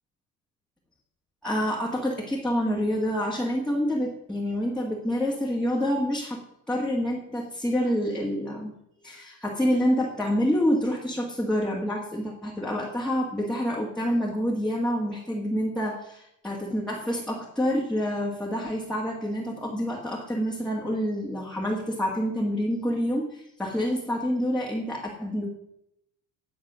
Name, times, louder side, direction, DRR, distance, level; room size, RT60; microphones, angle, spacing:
voice 1, 1.4-8.7 9.0-25.5, equal, ahead, -4 dB, 1.8 m, -27 dB
10.5 x 7.3 x 6.2 m, 0.78 s
cardioid pair, 135°, 34 cm